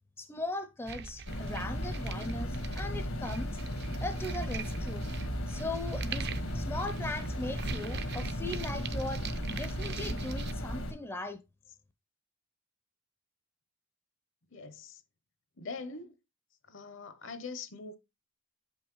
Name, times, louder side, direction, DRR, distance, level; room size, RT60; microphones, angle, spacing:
voice 1, 0.2-3.5 4.0-5.0 5.5-11.4, left 2 dB, 10° left, 0.5 m, -39 dB
sound 1, 0.9-10.5, right 5 dB, 50° right, 0.5 m, -42 dB
sound 2, 1.3-10.9, equal, 85° left, 1.5 m, -36 dB
voice 2, 14.5-15.0 15.6-16.2 16.7-18.0, left 4 dB, 65° left, 0.8 m, -42 dB
7.6 x 5.5 x 3.1 m
head